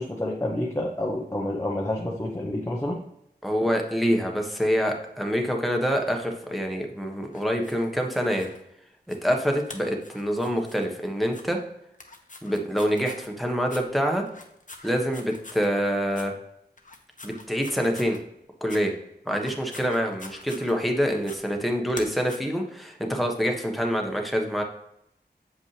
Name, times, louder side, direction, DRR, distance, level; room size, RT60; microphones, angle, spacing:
voice 1, 0.0-3.0, left 1 dB, 15° left, -2 dB, 1.0 m, -29 dB
voice 2, 3.4-8.5 9.1-11.6 12.4-14.2 14.8-16.3 17.2-18.2 18.6-18.9 19.3-24.6, equal, ahead, 2 dB, 1.3 m, -26 dB
sound 1, 7.3-8.6 9.1-9.3 9.6-10.9 11.3-11.4 11.9-13.3 13.7-13.8 14.3-15.7 16.1-16.3 16.8-18.2 18.7-18.8 19.3-20.9 21.2-21.4 21.9-22.4, left 2 dB, 45° left, 1.1 m, -45 dB
7.3 x 5.2 x 3.3 m, 0.79 s
wide cardioid pair, 50°, 18 cm